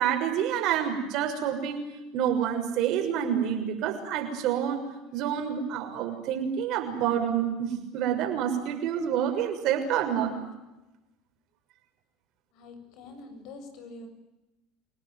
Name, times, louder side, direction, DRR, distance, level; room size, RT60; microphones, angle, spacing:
voice 1, 0.0-10.4, right 9 dB, 60° right, 5 dB, 6.5 m, -28 dB
voice 2, 12.5-14.1, left 3 dB, 65° left, 7 dB, 7.5 m, -45 dB
29.5 x 18.0 x 9.4 m, 1.0 s
hypercardioid pair, 85°, 0 cm